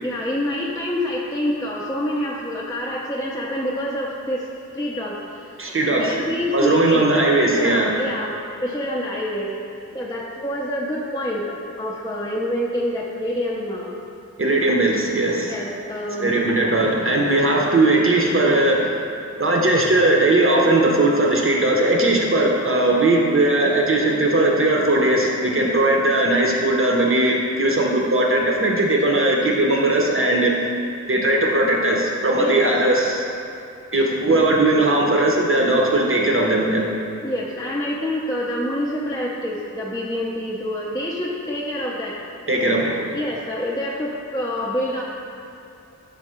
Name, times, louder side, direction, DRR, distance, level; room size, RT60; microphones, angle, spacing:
voice 1, 0.0-4.5 4.7-5.5 5.9-7.2 7.5-8.4 8.6-9.5 9.9-14.0 15.5-16.4 32.4-32.5 34.3-34.6 37.2-42.2 42.8-45.0, left 1 dB, 10° left, -4 dB, 0.5 m, -27 dB
voice 2, 5.6-6.1 6.5-7.9 14.4-15.6 16.2-18.9 19.4-30.5 31.1-33.3 33.9-36.9 42.5-43.2, right 2 dB, 45° right, -1 dB, 0.7 m, -18 dB
5.6 x 3.5 x 4.9 m, 2.7 s
wide cardioid pair, 95°, 31 cm